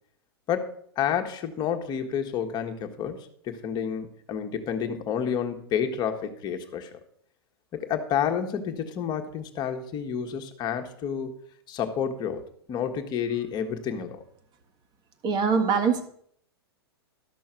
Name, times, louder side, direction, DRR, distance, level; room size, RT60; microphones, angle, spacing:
voice 1, 0.5-7.0 7.7-11.3 11.7-12.4 12.7-14.2, left 8 dB, 30° left, 5 dB, 1.5 m, -30 dB
voice 2, 15.2-16.0, right 5 dB, 30° right, 7 dB, 1.6 m, -23 dB
12.5 x 6.3 x 6.0 m, 0.64 s
hypercardioid pair, 105°, 14 cm